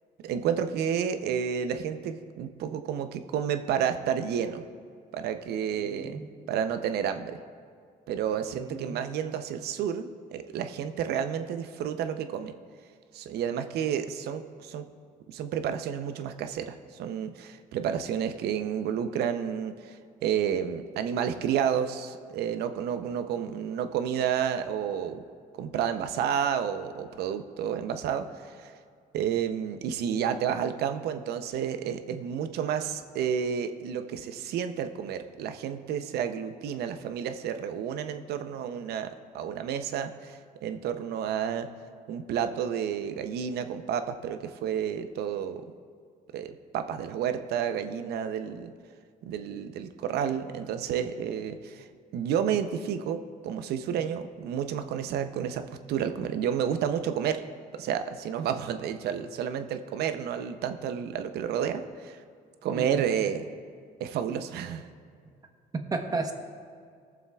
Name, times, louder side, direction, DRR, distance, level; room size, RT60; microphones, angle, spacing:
voice 1, 0.2-4.6 5.1-6.2 6.5-7.4 8.1-12.5 13.1-14.9 15.3-25.2 25.6-28.7 29.1-39.1 39.3-41.7 42.1-45.6 46.3-48.7 49.3-51.9 52.1-57.4 57.7-62.2 62.6-63.4 64.0-64.9, right 8 dB, 70° right, 9 dB, 0.6 m, -30 dB
voice 2, 5.8-6.3 8.5-9.0 62.7-63.1 65.7-66.3, right 3 dB, 20° right, 4 dB, 1.0 m, -33 dB
20.5 x 7.1 x 2.3 m, 2.2 s
cardioid pair, 110°, 17 cm